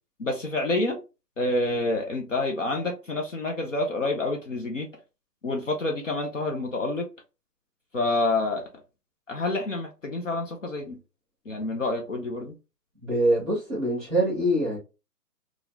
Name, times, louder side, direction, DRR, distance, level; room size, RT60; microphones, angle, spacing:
voice 1, 0.2-1.0 1.4-4.9 5.4-7.1 7.9-8.7 9.3-11.0 11.5-12.6, left 2 dB, 50° left, 0.6 m, -28 dB
voice 2, 13.0-14.8, right 1 dB, ahead, 1.0 m, -24 dB
3.9 x 2.4 x 2.6 m
hypercardioid pair, 170°, 49 cm